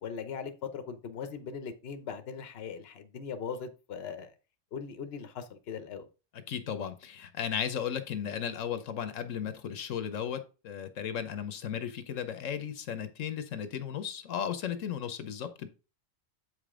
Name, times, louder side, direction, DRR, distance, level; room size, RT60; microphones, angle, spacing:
voice 1, 0.0-4.3 4.7-6.1, left 6 dB, 55° left, 9 dB, 1.0 m, -39 dB
voice 2, 6.3-15.7, left 8 dB, 85° left, 10 dB, 1.2 m, -35 dB
7.9 x 5.1 x 3.7 m, 0.31 s
omnidirectional pair, 1.3 m